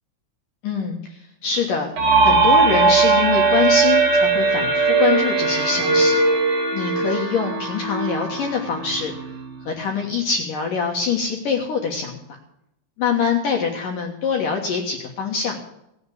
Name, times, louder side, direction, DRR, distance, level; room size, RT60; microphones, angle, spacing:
voice 1, 0.6-1.9 2.2-6.2 6.7-9.1 9.7-12.4 13.0-15.6, left 5 dB, 65° left, 1 dB, 2.2 m, -24 dB
sound 1, 2.0-9.6, right 4 dB, 50° right, 2.1 m, -19 dB
18.5 x 7.9 x 8.3 m, 0.81 s
omnidirectional pair, 5.9 m